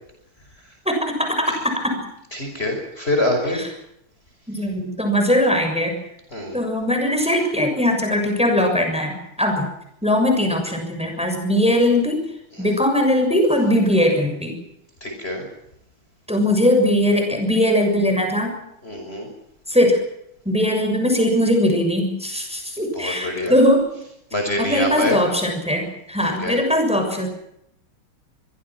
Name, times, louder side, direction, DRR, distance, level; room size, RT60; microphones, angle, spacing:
voice 1, 0.8-2.0 3.5-3.6 4.5-6.0 6.5-9.7 10.0-12.2 12.6-14.6 16.3-18.6 19.7-20.0 20.4-23.9 24.6-27.3, left 1 dB, 5° right, 4 dB, 6.7 m, -20 dB
voice 2, 2.3-3.6 6.3-6.6 12.5-12.7 15.0-15.5 18.8-19.3 22.9-23.5 24.3-25.2 26.4-26.6, left 1 dB, 25° left, 3 dB, 5.9 m, -25 dB
26.5 x 23.5 x 6.0 m, 0.77 s
omnidirectional pair, 2.4 m